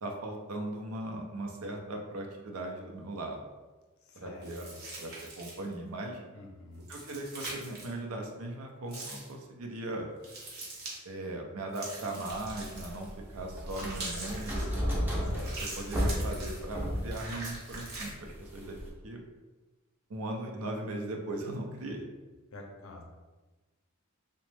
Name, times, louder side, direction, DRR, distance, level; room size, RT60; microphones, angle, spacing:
voice 1, 0.0-3.4 4.1-4.7 5.0-6.2 6.9-10.1 11.0-14.7 15.6-18.8 19.0-19.2 20.1-22.1, right 1 dB, 75° right, 2 dB, 0.5 m, -38 dB
voice 2, 4.1-4.8 6.3-6.9 15.2-15.8 22.5-23.0, left 2 dB, 65° left, 1 dB, 0.5 m, -47 dB
sound 1, 4.4-5.7 6.8-7.9 8.9-9.3 10.2-11.0 11.7-13.1 13.6-14.7 15.3-16.6 17.1-18.1, right 2 dB, 50° right, 0.8 m, -42 dB
sound 2, 12.3-18.9, equal, 10° right, 0.5 m, -34 dB
2.9 x 2.1 x 3.2 m, 1.2 s
head